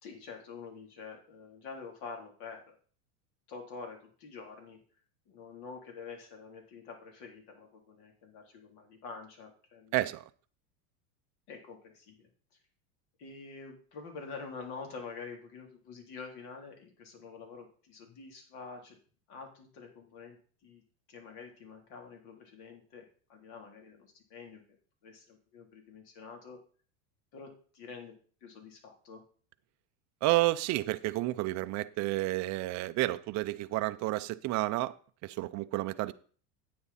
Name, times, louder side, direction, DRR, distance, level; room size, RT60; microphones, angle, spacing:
voice 1, 0.0-2.8 3.5-4.8 5.3-10.0 11.5-12.3 13.2-19.0 19.3-20.4 20.6-20.8 21.1-24.6 25.0-26.6 27.3-28.1 28.4-29.2, left 4 dB, 55° left, 3.5 m, -47 dB
voice 2, 9.9-10.3 30.2-34.9 35.2-36.1, right 18 dB, 35° right, 0.6 m, -30 dB
9.6 x 8.6 x 4.2 m
supercardioid pair, 115°, 47 cm